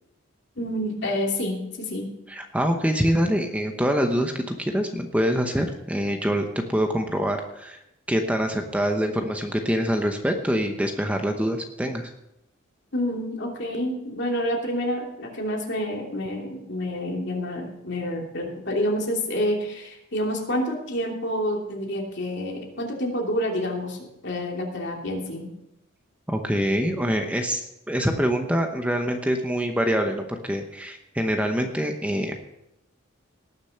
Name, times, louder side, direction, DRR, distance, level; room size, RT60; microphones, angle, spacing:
voice 1, 0.6-2.1 12.9-25.5, equal, 55° left, 0 dB, 2.9 m, -28 dB
voice 2, 2.3-7.8 8.1-12.1 26.3-32.3, equal, 5° right, 4 dB, 0.9 m, -25 dB
18.5 x 6.8 x 5.8 m, 0.86 s
head